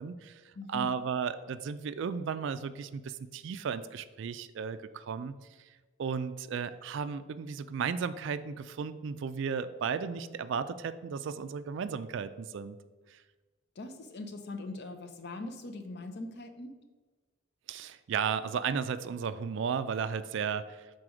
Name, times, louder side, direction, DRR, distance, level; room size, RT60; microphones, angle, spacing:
voice 1, 0.0-0.4 0.7-5.4 6.0-12.8 13.1-13.2 17.7-20.9, right 6 dB, 60° right, 13 dB, 0.3 m, -34 dB
voice 2, 0.5-0.9 13.8-16.8, left 2 dB, 50° left, 7 dB, 0.6 m, -41 dB
6.2 x 4.1 x 4.9 m, 1.3 s
head